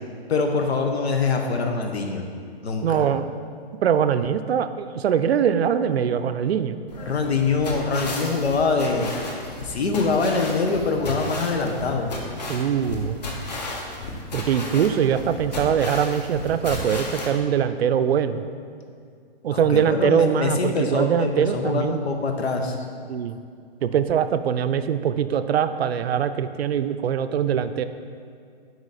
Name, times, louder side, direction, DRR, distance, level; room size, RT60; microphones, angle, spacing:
voice 1, 0.3-2.3 2.6-3.0 7.0-9.1 9.6-12.1 19.5-22.8, left 4 dB, 85° left, 4 dB, 1.1 m, -24 dB
voice 2, 2.8-3.3 3.8-6.8 12.5-13.2 14.3-18.4 19.4-22.0 23.1-23.4 23.8-27.8, right 8 dB, 80° right, 11 dB, 0.5 m, -22 dB
sound 1, 6.9-17.3, left 2 dB, 40° left, 1.0 m, -34 dB
8.0 x 4.8 x 4.1 m, 2.3 s
hypercardioid pair, 180°, 31 cm